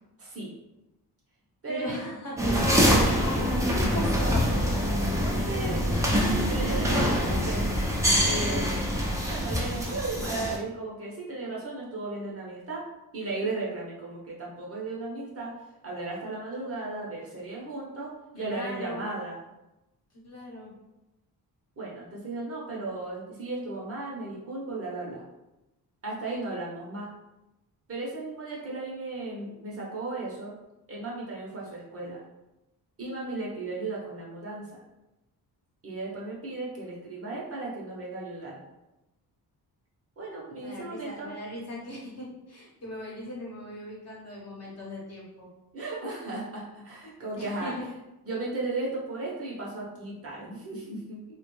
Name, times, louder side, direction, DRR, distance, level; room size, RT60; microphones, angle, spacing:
voice 1, 0.2-0.5 1.6-2.0 2.5-2.6 5.1-6.0 6.5-7.7 8.2-8.9 9.2-12.8 13.1-15.5 15.8-19.4 21.8-25.2 26.0-27.1 27.9-30.5 30.9-32.2 33.0-34.8 35.8-38.6 40.2-41.3 45.7-47.7 48.2-51.2, right 2 dB, 35° right, -4 dB, 0.8 m, -35 dB
voice 2, 1.7-2.4 2.9-4.6 18.4-19.1 20.2-20.7 40.6-45.5 47.4-47.8, equal, 40° left, -4 dB, 1.0 m, -38 dB
sound 1, 2.4-10.6, equal, 10° right, 0.5 m, -25 dB
3.3 x 2.2 x 3.0 m, 0.97 s
wide cardioid pair, 150°, 39 cm